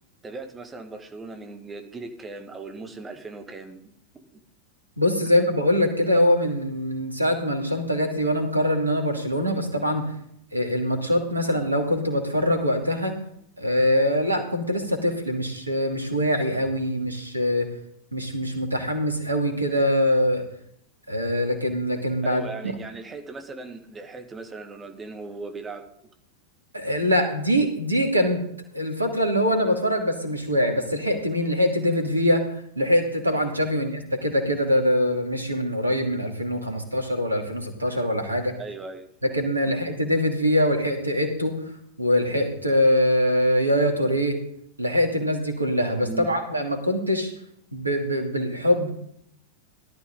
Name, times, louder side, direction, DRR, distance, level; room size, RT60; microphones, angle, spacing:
voice 1, 0.2-3.9 22.2-25.9 38.6-39.1 46.1-46.3, right 3 dB, 15° right, 6 dB, 1.7 m, -38 dB
voice 2, 5.0-10.1 10.5-13.2 13.6-17.7 18.1-20.4 21.1-22.7 26.7-28.5 28.7-32.5 32.8-38.6 39.2-41.6 42.0-44.4 44.8-47.3 47.7-48.9, equal, 85° right, 5 dB, 2.5 m, -23 dB
17.5 x 12.5 x 3.9 m, 0.71 s
figure-of-eight pair, 90°, 0 cm